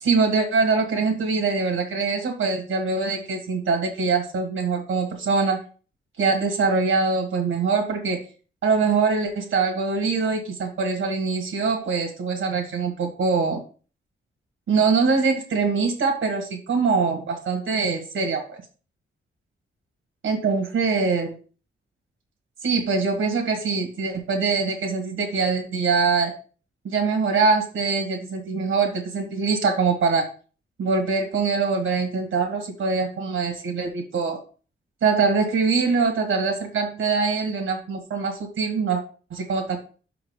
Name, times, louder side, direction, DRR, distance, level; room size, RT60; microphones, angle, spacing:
voice 1, 0.0-5.6 6.2-8.2 8.6-13.6 14.7-18.6 20.2-21.4 22.6-26.3 26.8-30.3 30.8-34.4 35.0-39.0 39.3-39.8, right 4 dB, 85° right, 2 dB, 1.5 m, -23 dB
5.9 x 3.9 x 5.0 m, 0.38 s
wide cardioid pair, 175°, 21 cm